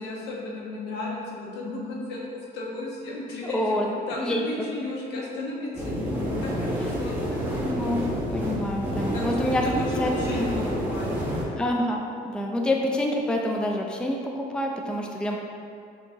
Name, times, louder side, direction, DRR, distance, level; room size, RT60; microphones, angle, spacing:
voice 1, 0.0-3.8 4.1-7.4 9.1-11.2, left 2 dB, 85° left, -3 dB, 1.0 m, -34 dB
voice 2, 3.4-4.5 7.7-9.7 10.0-10.1 10.4-10.5 11.5-15.4, left 1 dB, 5° left, 0 dB, 0.4 m, -27 dB
sound 1, 5.7-11.4, equal, 10° right, 0.9 m, -28 dB
6.3 x 2.8 x 2.6 m, 2.3 s
cardioid pair, 110°, 17 cm